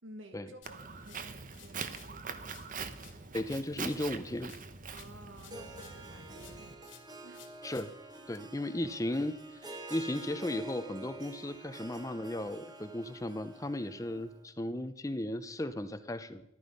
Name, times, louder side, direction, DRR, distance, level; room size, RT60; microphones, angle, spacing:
voice 1, 0.0-2.5 4.9-7.0 7.2-7.5, right 1 dB, 80° right, 5 dB, 2.1 m, -53 dB
sound 1, 0.6-2.2 2.4-6.1 6.4-8.4, left 8 dB, 75° left, 2.3 m, -58 dB
Walk footsteps, 0.6-6.7, right 5 dB, 40° right, 0.9 m, -43 dB
voice 2, 3.3-4.5 7.6-7.9 8.3-16.4, left 1 dB, 15° left, 11 dB, 0.6 m, -36 dB
Harp, 5.4-14.4, right 2 dB, 20° right, 1.3 m, -48 dB
14.5 x 11.5 x 5.4 m, 0.88 s
head